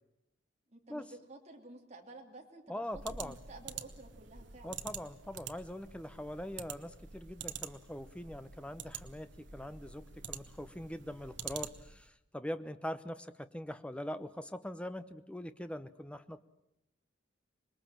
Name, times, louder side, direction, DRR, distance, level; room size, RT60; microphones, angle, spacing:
voice 1, 0.7-2.8 3.1-4.9, right 2 dB, 35° right, 1 dB, 2.9 m, -52 dB
voice 2, 2.7-3.4 4.6-16.4, left 1 dB, 5° left, 11 dB, 0.8 m, -42 dB
sound 1, 2.9-12.1, right 7 dB, 65° right, 1.4 m, -47 dB
26.0 x 21.0 x 7.6 m, 0.84 s
head